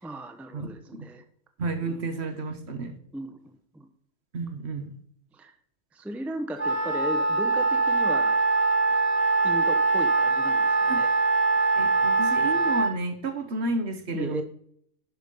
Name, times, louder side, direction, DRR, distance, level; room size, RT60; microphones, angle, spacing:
voice 1, 0.0-1.2 1.9-2.1 3.1-3.9 5.3-5.5 5.9-8.4 9.4-11.1 14.1-14.4, right 1 dB, ahead, 7 dB, 0.7 m, -36 dB
voice 2, 0.5-1.1 1.6-3.0 4.3-5.0 10.9-11.0 11.7-14.4, right 2 dB, 55° right, 8 dB, 1.3 m, -31 dB
Wind instrument woodwind instrument, 6.6-12.9, right 3 dB, 30° right, 1.7 m, -23 dB
11.5 x 5.1 x 5.3 m, 0.65 s
omnidirectional pair, 1.4 m